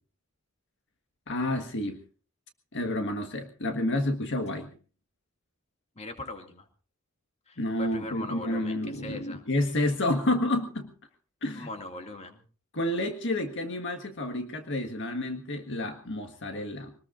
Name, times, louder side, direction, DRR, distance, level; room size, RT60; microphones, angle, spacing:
voice 1, 1.3-2.0 2.7-4.7 7.6-10.9 11.4-11.7 12.7-16.9, left 1 dB, 60° left, 5 dB, 1.6 m, -30 dB
voice 2, 6.0-6.7 7.5-9.4 11.5-12.4, left 2 dB, 30° left, 4 dB, 2.3 m, -40 dB
24.5 x 20.0 x 2.6 m, 0.39 s
head